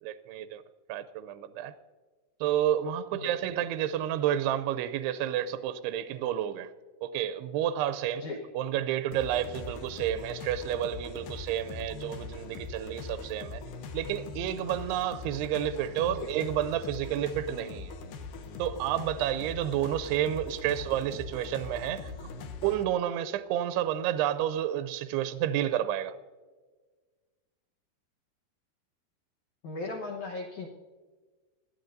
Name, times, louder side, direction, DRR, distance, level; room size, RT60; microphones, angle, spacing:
voice 1, 0.0-0.6 0.9-1.7 2.4-6.7 7.0-8.2 8.5-13.6 13.9-17.9 18.6-22.1 22.6-26.2, right 11 dB, 85° right, 10 dB, 2.4 m, -30 dB
sound 1, 9.1-22.8, left 4 dB, 75° left, 2.1 m, -41 dB
voice 2, 29.6-30.7, left 3 dB, 90° left, -1 dB, 1.7 m, -37 dB
20.5 x 13.5 x 2.6 m, 1.4 s
omnidirectional pair, 5.2 m